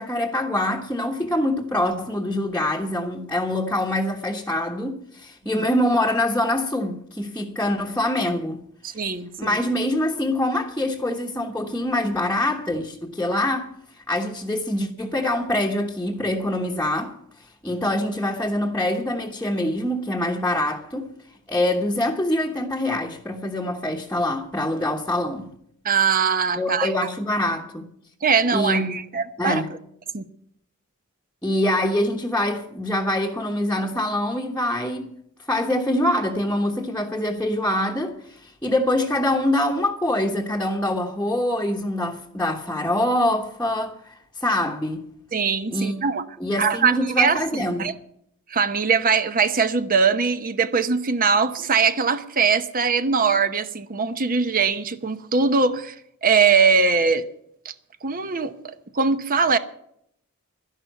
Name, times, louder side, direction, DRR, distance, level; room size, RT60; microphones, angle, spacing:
voice 1, 0.0-8.6 9.4-17.2 17.6-21.1 21.5-25.5 26.6-27.8 28.5-29.0 29.4-29.7 31.4-35.1 35.5-45.1 45.7-46.0 46.4-47.9, left 1 dB, 5° left, 1.2 m, -24 dB
voice 2, 8.8-9.6 25.8-26.9 28.2-29.6 30.1-30.3 45.3-46.2 46.6-47.9 48.5-55.9 56.2-57.2 57.6-57.7 58.0-59.6, right 5 dB, 40° right, 0.9 m, -21 dB
12.0 x 11.0 x 8.0 m
head